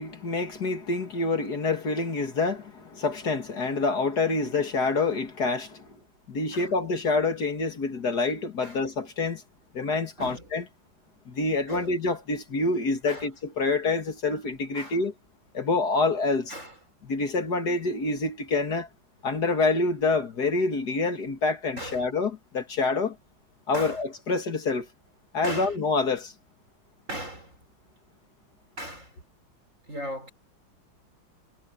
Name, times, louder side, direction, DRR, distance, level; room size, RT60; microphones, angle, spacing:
voice 1, 0.0-5.9 6.3-9.4 9.7-10.6 11.3-15.1 15.5-16.5 17.0-18.9 19.2-23.2 23.7-24.9 25.3-26.3, left 3 dB, 50° left, 2.5 m, -27 dB
voice 2, 10.2-10.5 11.7-11.9 13.1-13.3 14.7-15.0 16.5-16.7 21.8-22.1 23.7-24.0 25.4-25.8 27.1-27.6 28.8-29.1 29.9-30.3, equal, 35° right, 6.3 m, -37 dB
omnidirectional pair, 2.2 m